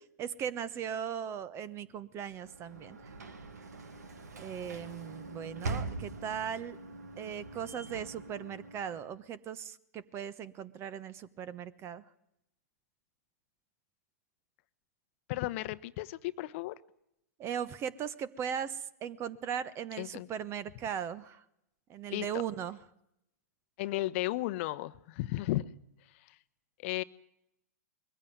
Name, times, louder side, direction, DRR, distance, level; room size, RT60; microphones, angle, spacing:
voice 1, 0.2-3.0 4.3-6.8 7.2-12.0 17.4-21.4 21.9-22.8, right 8 dB, 30° right, 18 dB, 1.1 m, -38 dB
Sliding door / Slam, 2.2-9.2, right 3 dB, 85° right, 2.2 m, -43 dB
voice 2, 15.3-16.8 20.0-20.3 22.1-22.3 23.8-25.7 26.1-26.2 26.8-27.0, left 17 dB, 50° left, 15 dB, 0.9 m, -34 dB
22.0 x 15.5 x 9.5 m, 0.81 s
hypercardioid pair, 115°, 9 cm